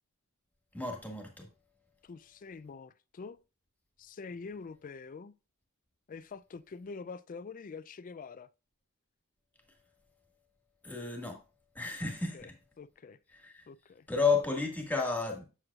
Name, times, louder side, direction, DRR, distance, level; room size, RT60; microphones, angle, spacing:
voice 1, 0.7-1.5 10.8-11.4 11.7-12.5 13.3-13.7 14.1-15.4, left 4 dB, 5° left, 1.7 m, -32 dB
voice 2, 2.0-3.4 4.0-5.3 6.1-8.5 12.3-12.5 12.8-13.2 13.7-14.1, left 4 dB, 40° left, 0.3 m, -45 dB
7.8 x 7.6 x 2.4 m
head